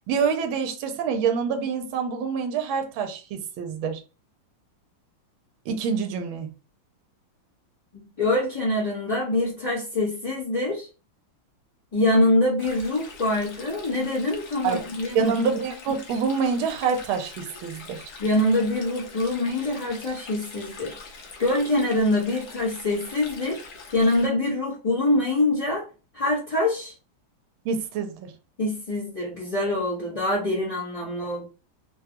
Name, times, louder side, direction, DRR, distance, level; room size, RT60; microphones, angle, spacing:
voice 1, 0.1-4.0 5.7-6.5 14.6-14.8 15.1-18.1 27.6-28.3, right 6 dB, 80° right, 1.5 m, -26 dB
voice 2, 7.9-10.9 11.9-15.3 18.2-21.0 21.4-23.6 23.9-25.8 26.1-26.9 28.6-31.5, left 1 dB, 30° left, 0.7 m, -24 dB
Stream, 12.6-24.3, left 4 dB, 60° left, 1.2 m, -44 dB
3.6 x 2.2 x 2.8 m
omnidirectional pair, 2.2 m